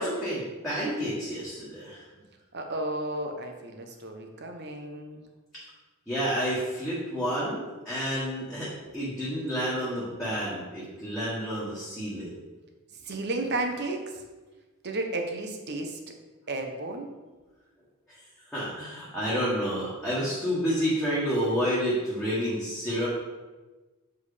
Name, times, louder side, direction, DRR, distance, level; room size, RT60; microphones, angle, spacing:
voice 1, 0.0-2.0 6.1-8.7 8.9-12.3 18.5-23.1, equal, ahead, -10 dB, 1.6 m, -29 dB
voice 2, 2.5-5.2 9.2-9.3 13.0-14.1 14.8-16.0 16.5-17.1, right 2 dB, 50° right, 4 dB, 1.0 m, -33 dB
7.3 x 4.6 x 5.0 m, 1.2 s
head